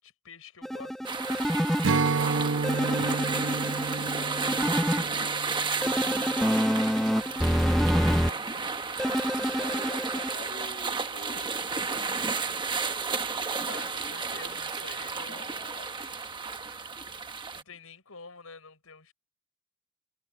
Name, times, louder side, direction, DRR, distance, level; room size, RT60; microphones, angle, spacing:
voice 1, 0.0-1.5 6.0-8.7 13.6-15.4 17.0-19.1, left 4 dB, 80° left, 5.5 m, -50 dB
sound 1, 0.6-1.8 2.6-5.0 5.8-8.3 9.0-10.3, equal, ahead, 0.6 m, -27 dB
sound 2, 1.0-17.6, right 4 dB, 20° right, 1.1 m, -32 dB
Strum, 1.8-7.3, right 4 dB, 60° right, 0.9 m, -31 dB
voice 2, 9.5-12.4 12.8-14.1 15.2-16.1 17.5-17.6, left 2 dB, 40° left, 2.7 m, -48 dB
head